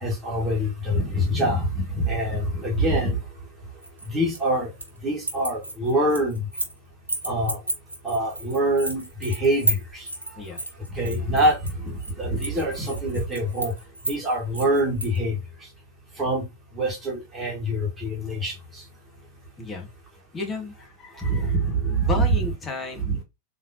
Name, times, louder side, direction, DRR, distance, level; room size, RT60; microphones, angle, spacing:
voice 1, 0.0-3.2 4.1-4.7 5.0-6.4 7.2-7.6 8.0-10.0 11.0-11.6 11.8-13.7 14.1-15.3 16.2-16.4 16.8-18.5 21.3-22.2, right 1 dB, 15° right, 1.7 m, -24 dB
sound 1, 3.8-5.0 5.2-6.8 7.1-15.2, right 2 dB, 80° right, 1.1 m, -32 dB
voice 2, 19.6-19.9 20.3-21.5 21.9-23.2, left 3 dB, 20° left, 1.3 m, -33 dB
3.7 x 2.9 x 2.7 m
figure-of-eight pair, 90°, 0 cm